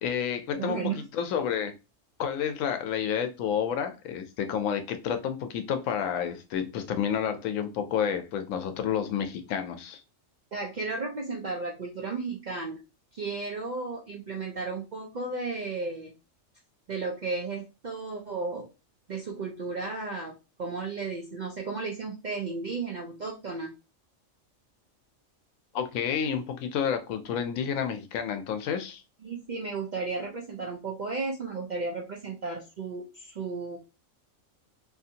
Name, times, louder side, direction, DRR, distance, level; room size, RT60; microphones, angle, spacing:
voice 1, 0.0-1.7 2.2-10.0 25.7-29.0, left 8 dB, 85° left, 8 dB, 1.0 m, -30 dB
voice 2, 0.5-1.0 10.5-12.8 13.1-16.1 16.9-18.7 19.1-23.7 29.2-33.8, right 4 dB, 60° right, 0 dB, 0.4 m, -34 dB
2.7 x 2.5 x 2.7 m, 0.28 s
omnidirectional pair, 1.3 m